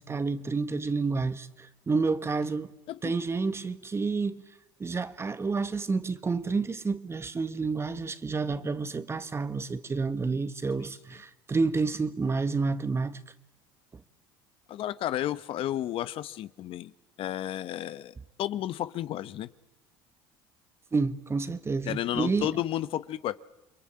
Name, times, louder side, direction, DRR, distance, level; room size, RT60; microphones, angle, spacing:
voice 1, 0.0-2.7 3.0-4.4 4.8-13.2 20.9-22.5, right 4 dB, 25° right, 1.5 m, -29 dB
voice 2, 14.7-16.9 17.2-19.5 21.8-23.4, left 12 dB, 55° left, 1.0 m, -32 dB
29.0 x 22.0 x 8.8 m
supercardioid pair, 80°, 11 cm